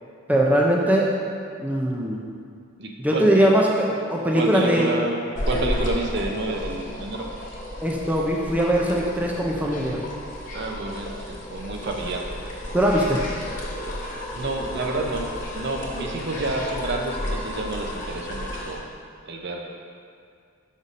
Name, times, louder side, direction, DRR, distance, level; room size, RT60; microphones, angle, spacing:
voice 1, 0.3-1.1 1.6-2.2 3.0-4.9 7.8-10.0 12.7-13.2, equal, 5° right, -2 dB, 0.5 m, -21 dB
voice 2, 2.8-3.3 4.3-7.3 10.5-12.3 14.3-18.9 19.3-19.8, right 2 dB, 55° right, 1 dB, 0.7 m, -29 dB
sound 1, 5.3-18.7, equal, 40° left, 1.1 m, -32 dB
6.1 x 5.4 x 4.0 m, 2.3 s
head